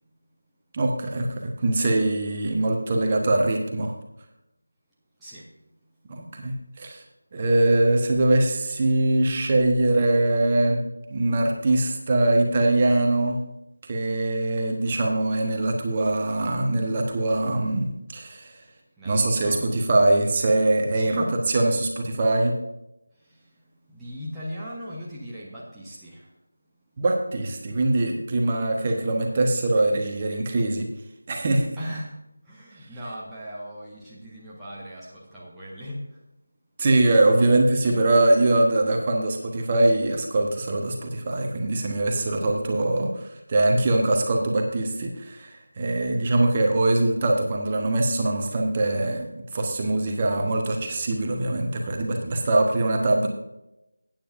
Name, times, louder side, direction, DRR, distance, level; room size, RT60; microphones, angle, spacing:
voice 1, 0.7-3.9 6.1-7.0 7.3-10.8 11.1-13.4 13.9-18.6 19.0-22.5 27.0-30.9 31.3-31.7 36.8-49.2 49.5-53.3, right 2 dB, 25° right, 1 dB, 1.1 m, -22 dB
voice 2, 19.0-19.7 20.9-21.3 23.9-26.3 31.8-32.1 32.5-36.0 37.4-38.0, equal, 5° right, -10 dB, 1.0 m, -38 dB
15.0 x 8.9 x 2.6 m, 0.89 s
figure-of-eight pair, 165°, 0 cm